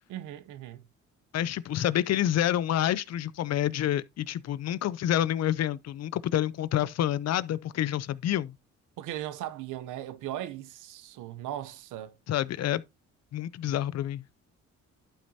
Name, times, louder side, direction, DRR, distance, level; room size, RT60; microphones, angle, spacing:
voice 1, 0.1-0.9 9.0-12.2, right 12 dB, 90° right, 0.8 m, -38 dB
voice 2, 1.3-8.5 12.3-12.8 13.3-14.2, left 11 dB, 60° left, 0.6 m, -28 dB
11.5 x 5.4 x 2.8 m
cardioid pair, 90°, 30 cm